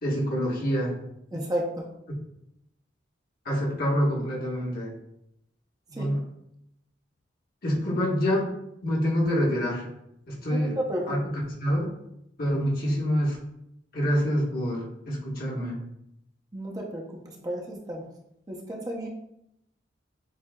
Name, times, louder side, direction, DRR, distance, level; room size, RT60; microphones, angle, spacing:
voice 1, 0.0-1.0 1.3-1.4 3.4-4.9 5.9-6.2 7.6-8.5 8.8-9.9 10.3-10.8 11.1-11.9 12.4-13.4 13.9-15.8, equal, 55° left, -4 dB, 1.3 m, -26 dB
voice 2, 1.3-1.9 5.9-6.1 10.5-11.2 16.5-18.0 18.5-19.1, right 1 dB, 20° right, -1 dB, 0.6 m, -32 dB
7.2 x 2.6 x 2.3 m, 0.79 s
head